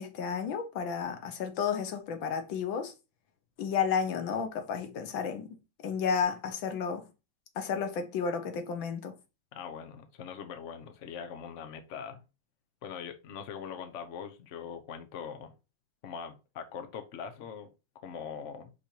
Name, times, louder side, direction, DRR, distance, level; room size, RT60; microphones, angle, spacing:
voice 1, 0.0-2.9 3.6-5.6 5.8-7.1 7.6-9.2, left 6 dB, 90° left, 1.8 m, -32 dB
voice 2, 9.5-12.2 12.8-15.5 16.0-17.7 18.0-18.7, left 7 dB, 50° left, 1.0 m, -42 dB
5.4 x 4.3 x 4.5 m
omnidirectional pair, 2.0 m